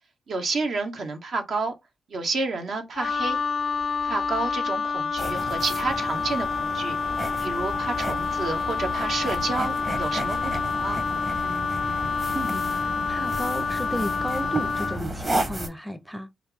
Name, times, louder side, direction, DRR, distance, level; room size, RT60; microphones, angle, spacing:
voice 1, 0.3-1.7 2.1-3.4 4.0-7.0 7.4-11.0, right 3 dB, 65° right, 1.0 m, -30 dB
Wind instrument woodwind instrument, 3.0-15.0, left 5 dB, 65° left, 0.3 m, -28 dB
sound 1, 5.2-15.7, right 1 dB, 30° right, 1.2 m, -33 dB
voice 2, 12.3-16.3, right 1 dB, 5° right, 0.6 m, -33 dB
3.0 x 2.5 x 3.5 m
cardioid pair, 65°, 0 cm